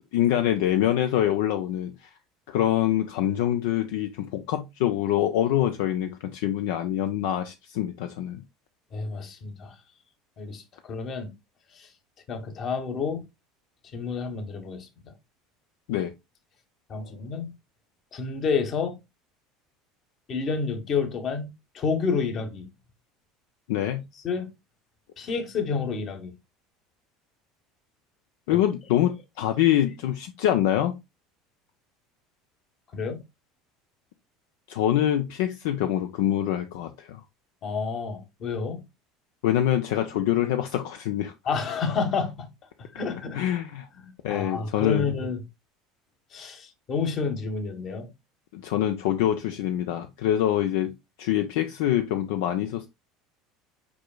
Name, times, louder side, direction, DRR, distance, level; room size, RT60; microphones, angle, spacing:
voice 1, 0.1-2.1 2.5-8.4 15.9-16.1 16.9-17.1 23.7-24.0 28.5-30.9 34.7-37.2 39.4-41.3 43.3-43.9 44.2-45.1 48.5-52.9, left 12 dB, 75° left, 0.4 m, -25 dB
voice 2, 8.9-9.7 10.4-11.3 11.7-11.9 12.3-13.2 13.9-15.1 16.9-17.5 18.1-19.0 20.3-21.5 21.7-22.7 24.2-24.5 25.2-26.3 32.9-33.2 37.6-38.8 41.4-42.5 42.8-43.4 44.0-45.4 46.3-48.1, left 5 dB, 45° left, 1.2 m, -29 dB
4.8 x 4.8 x 2.2 m
hypercardioid pair, 80°, 0 cm